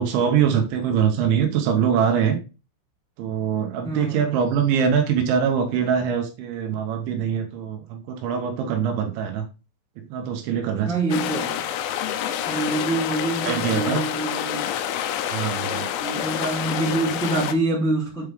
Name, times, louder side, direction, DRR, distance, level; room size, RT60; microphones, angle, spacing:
voice 1, 0.0-2.4 3.2-9.5 10.1-10.9 13.5-14.0 15.3-15.9, right 7 dB, 75° right, 3.4 m, -23 dB
voice 2, 3.8-4.2 10.8-11.6 12.5-14.7 16.0-18.3, right 2 dB, ahead, 1.8 m, -26 dB
sound 1, 11.1-17.5, left 10 dB, 85° left, 3.0 m, -28 dB
8.2 x 5.5 x 3.5 m
omnidirectional pair, 5.6 m